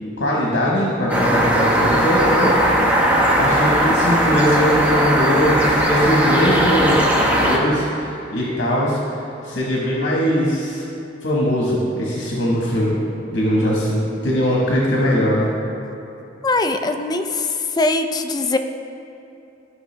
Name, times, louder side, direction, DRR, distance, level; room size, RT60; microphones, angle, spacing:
voice 1, 0.2-3.0 3.3-10.8 11.2-13.0 13.3-15.5, equal, 65° left, -4 dB, 1.4 m, -20 dB
sound 1, 1.1-7.6, equal, 10° right, 1.0 m, -18 dB
voice 2, 16.4-17.5 17.8-18.6, left 2 dB, 20° left, 6 dB, 0.4 m, -21 dB
13.0 x 5.6 x 3.3 m, 2.8 s
head